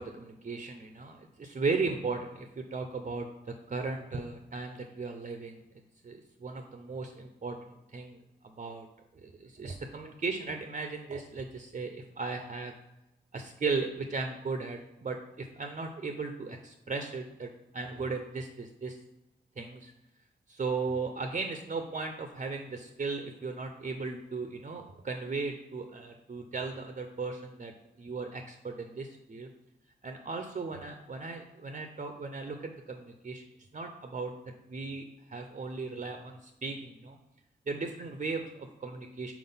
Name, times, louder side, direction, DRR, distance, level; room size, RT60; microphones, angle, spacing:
voice 1, 0.0-3.3 3.7-5.6 6.0-8.2 8.4-8.9 9.2-12.7 13.3-19.0 19.6-19.9 20.5-27.7 28.0-29.5 30.0-33.4 33.7-34.3 34.7-35.0 35.3-37.2 37.7-39.3, right 4 dB, 40° right, 5 dB, 0.5 m, -36 dB
4.5 x 3.9 x 5.5 m, 0.95 s
cardioid pair, 75°, 19 cm